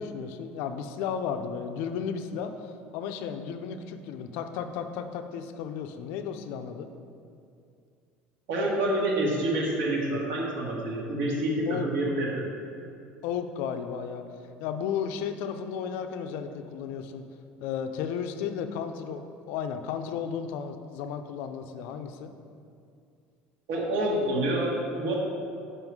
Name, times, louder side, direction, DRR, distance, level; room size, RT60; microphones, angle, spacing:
voice 1, 0.0-6.9 11.7-11.9 13.2-14.2 14.6-17.2 17.6-22.3, left 7 dB, 60° left, 8 dB, 0.4 m, -34 dB
voice 2, 8.5-12.5 23.7-25.1, right 1 dB, 65° right, -2 dB, 1.4 m, -27 dB
5.6 x 5.4 x 4.7 m, 2.4 s
cardioid pair, 175°, 4 cm